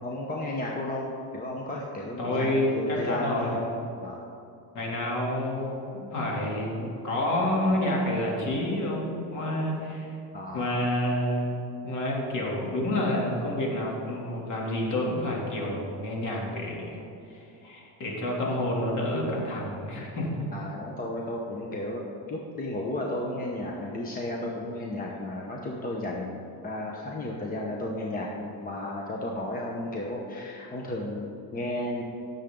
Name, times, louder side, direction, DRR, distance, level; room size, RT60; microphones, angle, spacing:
voice 1, 0.0-3.6 4.0-4.2 10.3-10.7 20.5-22.0 22.3-32.0, left 1 dB, 20° left, -1 dB, 1.1 m, -33 dB
voice 2, 2.2-3.7 4.7-10.1 10.5-11.6 11.8-17.0 17.3-20.5, left 1 dB, 45° left, -2 dB, 3.0 m, -29 dB
18.0 x 7.4 x 3.8 m, 2.7 s
cardioid pair, 140°, 41 cm